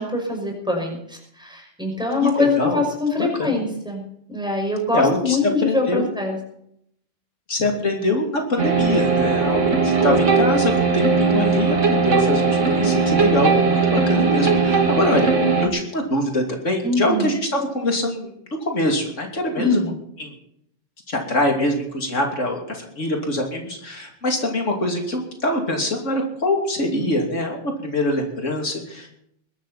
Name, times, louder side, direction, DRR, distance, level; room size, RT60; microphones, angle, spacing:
voice 1, 0.0-4.0 4.3-6.4 10.0-10.2 16.8-17.3 19.5-20.0 26.9-27.2, left 3 dB, 5° right, 1 dB, 5.5 m, -23 dB
voice 2, 2.2-2.8 3.2-3.5 4.9-6.1 7.5-15.3 15.6-18.3 18.7-19.8 20.2-20.3 21.1-29.2, left 1 dB, 80° left, 2 dB, 3.2 m, -24 dB
sound 1, 8.6-15.7, right 4 dB, 75° right, 2.5 m, -19 dB
21.0 x 12.5 x 4.3 m, 0.71 s
omnidirectional pair, 1.3 m